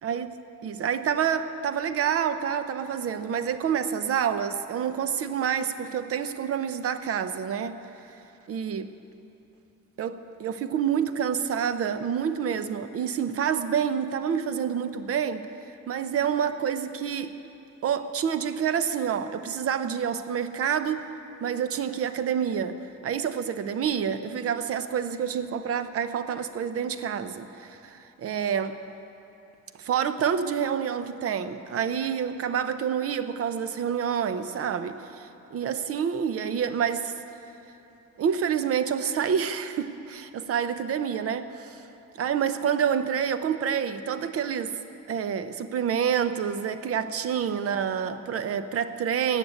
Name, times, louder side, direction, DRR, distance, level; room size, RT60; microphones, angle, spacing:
voice 1, 0.0-0.4 0.6-7.8 8.5-8.9 10.0-15.5 15.9-17.4 17.8-21.1 21.4-28.8 29.8-37.1 38.2-41.8 42.2-44.8 45.1-49.4, right 8 dB, 45° right, 11 dB, 0.7 m, -28 dB
16.5 x 6.9 x 9.3 m, 2.9 s
cardioid pair, 160°, 32 cm